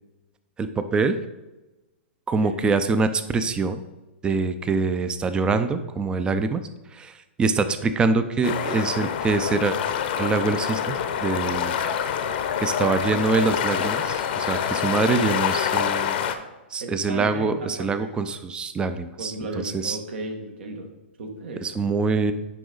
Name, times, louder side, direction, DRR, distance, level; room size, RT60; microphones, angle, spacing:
voice 1, 0.6-1.2 2.3-3.8 4.2-6.6 6.9-9.8 10.2-11.8 12.6-16.2 16.7-20.0 21.6-22.3, right 4 dB, 15° right, 11 dB, 0.5 m, -24 dB
sound 1, 8.4-16.3, left 8 dB, 55° left, 0.7 m, -26 dB
voice 2, 16.8-18.1 19.2-21.6, right 2 dB, 65° right, 3 dB, 1.6 m, -35 dB
10.0 x 3.8 x 3.9 m, 1.1 s
hypercardioid pair, 130°, 6 cm